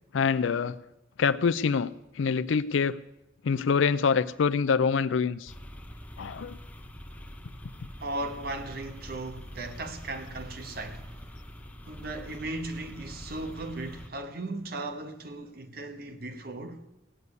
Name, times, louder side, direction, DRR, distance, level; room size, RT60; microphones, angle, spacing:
voice 1, 0.1-0.8 1.2-1.9 2.2-2.9 3.4-5.5 6.2-6.6, left 5 dB, 80° left, 0.4 m, -25 dB
sound 1, 5.5-14.1, equal, 10° left, 0.9 m, -45 dB
voice 2, 8.0-11.2 11.8-16.8, right 2 dB, 50° right, 1.2 m, -37 dB
16.5 x 6.8 x 9.7 m
head